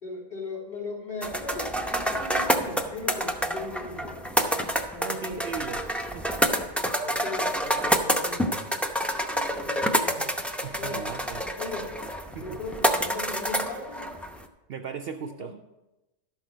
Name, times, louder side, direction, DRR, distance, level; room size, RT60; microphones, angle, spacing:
voice 1, 0.0-4.7 4.9-5.5 7.0-8.5 9.4-10.4 10.8-11.0 11.4-11.9 12.4-14.1 15.4-15.5, left 3 dB, 35° left, -3 dB, 3.4 m, -38 dB
sound 1, 1.2-14.5, equal, ahead, 0.4 m, -28 dB
voice 2, 5.0-5.8 6.1-6.3 10.6-11.4 12.3-12.6 14.7-15.5, right 7 dB, 65° right, 7 dB, 0.7 m, -37 dB
12.0 x 6.3 x 5.1 m, 1.0 s
omnidirectional pair, 1.2 m